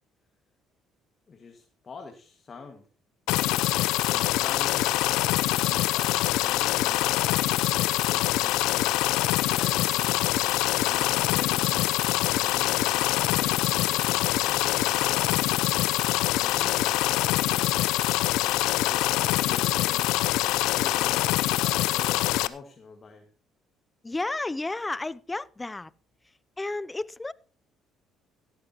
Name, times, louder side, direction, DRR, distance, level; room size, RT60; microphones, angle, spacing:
voice 1, 1.3-2.8 3.7-5.0 5.5-8.9 9.5-10.1 10.9-15.3 16.4-18.1 18.8-20.1 20.7-23.3, left 4 dB, 40° left, 1.8 m, -46 dB
sound 1, 3.3-22.5, left 16 dB, 80° left, 0.5 m, -24 dB
sound 2, 8.3-8.9 9.2-13.1, right 6 dB, 50° right, 3.3 m, -55 dB
voice 2, 24.0-25.9 26.6-27.3, left 2 dB, 15° left, 0.5 m, -32 dB
16.0 x 13.5 x 2.9 m
supercardioid pair, 85°, 0 cm